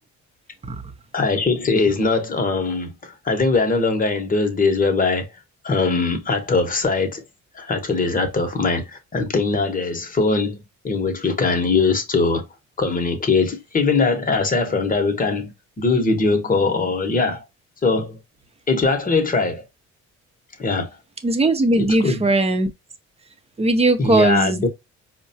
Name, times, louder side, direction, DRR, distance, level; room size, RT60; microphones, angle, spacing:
voice 1, 1.1-5.3 5.6-7.2 7.5-12.5 12.8-17.4 17.8-18.2 18.7-19.6 20.6-21.0 21.8-22.2 24.0-24.7, left 3 dB, 30° left, 1.0 m, -21 dB
voice 2, 21.2-22.7 23.6-24.7, right 2 dB, 20° right, 0.7 m, -19 dB
4.5 x 2.2 x 2.7 m
cardioid pair, 90°, 30 cm